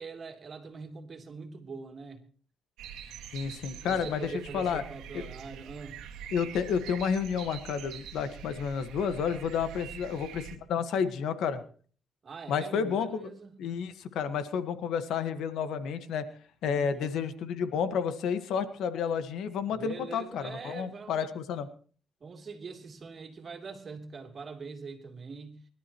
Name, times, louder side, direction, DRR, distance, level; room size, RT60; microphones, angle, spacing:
voice 1, 0.0-2.2 3.8-6.0 12.2-13.6 16.6-17.2 19.6-21.3 22.2-25.6, right 5 dB, 45° right, 3.1 m, -43 dB
sound 1, 2.8-10.6, right 9 dB, 90° right, 1.8 m, -45 dB
voice 2, 3.3-4.8 5.1-5.2 6.3-11.6 12.5-13.2 13.6-16.3 16.6-21.7, left 7 dB, 80° left, 1.4 m, -31 dB
24.0 x 12.5 x 3.0 m
cardioid pair, 90°, 0 cm